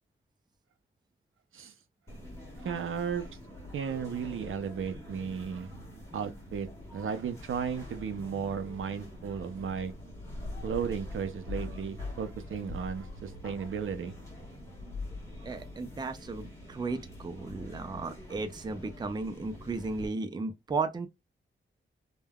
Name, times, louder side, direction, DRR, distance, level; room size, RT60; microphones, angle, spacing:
sound 1, 2.1-20.1, left 1 dB, 15° left, 1.2 m, -44 dB
voice 1, 2.6-3.3 3.7-5.7 6.1-9.9 10.6-14.1, right 7 dB, 75° right, 0.5 m, -35 dB
voice 2, 15.4-21.1, right 3 dB, 20° right, 0.4 m, -35 dB
3.4 x 2.2 x 2.2 m
wide cardioid pair, 140°, 21 cm